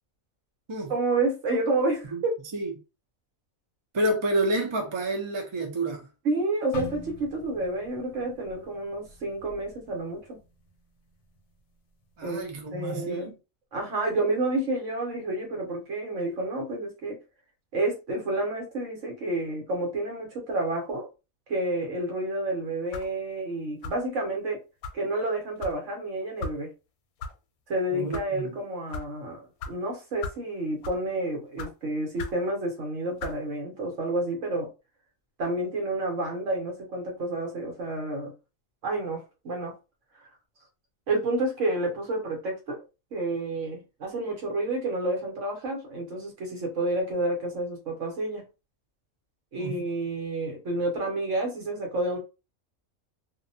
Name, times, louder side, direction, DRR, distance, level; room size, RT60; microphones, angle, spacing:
voice 1, 0.9-2.4 6.2-10.4 12.2-12.4 12.7-13.3 13.7-17.2 17.7-21.1 21.5-24.6 24.9-26.7 27.7-29.4 29.7-34.7 35.4-38.3 38.8-39.7 41.1-42.8 43.1-48.4 49.5-52.2, right 2 dB, 65° right, 1.2 m, -29 dB
voice 2, 3.9-6.1 12.2-13.3 27.9-28.5 49.6-49.8, right 1 dB, 45° right, 0.3 m, -29 dB
sound 1, 6.7-10.8 11.1-11.4 12.0-12.4, left 1 dB, 60° left, 0.9 m, -44 dB
sound 2, 22.9-23.2 23.8-24.1 24.8-25.0 25.6-25.8 26.4-26.6 27.2-27.3 27.9-28.3 28.9-29.1 29.6-29.7 30.2-30.4 30.8-31.1 31.6-31.7 32.2-32.4 33.2-33.4, left 3 dB, 85° left, 1.0 m, -36 dB
2.7 x 2.1 x 2.6 m
omnidirectional pair, 1.5 m